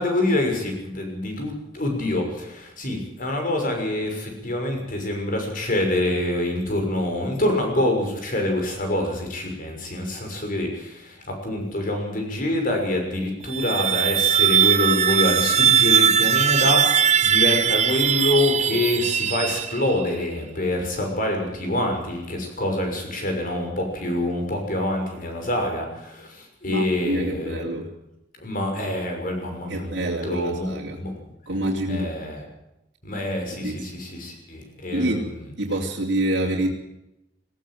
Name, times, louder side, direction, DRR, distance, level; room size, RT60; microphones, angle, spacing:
voice 1, 0.0-27.7 28.4-31.2 31.9-32.4 33.0-35.4, left 1 dB, 50° left, 3 dB, 6.4 m, -26 dB
sound 1, 13.4-20.1, right 8 dB, 40° right, 0.7 m, -20 dB
voice 2, 26.7-27.9 29.7-31.0 31.5-32.1 33.5-33.8 34.9-35.3 35.6-36.7, right 1 dB, 80° right, -3 dB, 3.0 m, -26 dB
19.5 x 17.0 x 7.8 m, 0.87 s
head